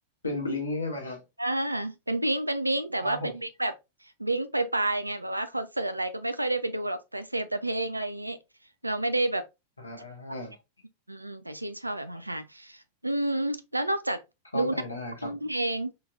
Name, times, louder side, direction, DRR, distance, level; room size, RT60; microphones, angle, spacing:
voice 1, 0.2-1.2 3.0-3.3 9.8-10.5 14.5-15.3, left 2 dB, 80° left, 1.1 m, -34 dB
voice 2, 1.4-3.7 4.2-8.4 8.8-9.4 11.1-14.2 14.5-14.8 15.2-15.9, right 1 dB, 85° right, 0.4 m, -29 dB
3.6 x 2.9 x 2.3 m
figure-of-eight pair, 90°, 0 cm